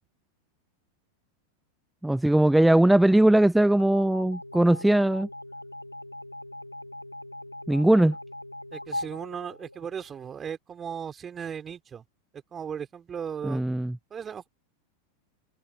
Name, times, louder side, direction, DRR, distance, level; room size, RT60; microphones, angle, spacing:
voice 1, 2.0-5.3 7.7-8.1 13.4-13.9, right 1 dB, 5° right, 0.7 m, -20 dB
sound 1, 3.8-10.3, left 1 dB, 85° left, 1.8 m, -40 dB
voice 2, 8.7-12.0 12.3-13.7 14.1-14.5, right 7 dB, 20° right, 4.2 m, -37 dB
figure-of-eight pair, 90°, 0 cm